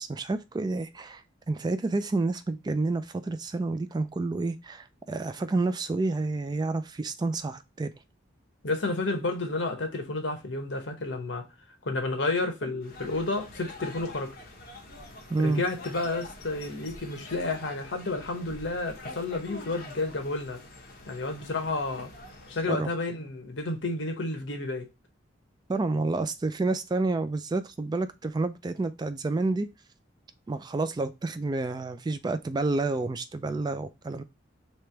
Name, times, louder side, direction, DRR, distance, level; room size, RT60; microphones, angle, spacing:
voice 1, 0.0-7.9 15.3-15.6 22.7-22.9 25.7-29.7 30.5-34.2, right 3 dB, 20° right, 0.3 m, -29 dB
voice 2, 8.6-11.4 11.8-14.3 15.4-20.6 21.1-22.1 22.5-24.9, left 2 dB, 75° left, 1.0 m, -31 dB
sound 1, 12.8-22.7, left 2 dB, 50° left, 1.2 m, -45 dB
3.3 x 3.0 x 4.4 m
head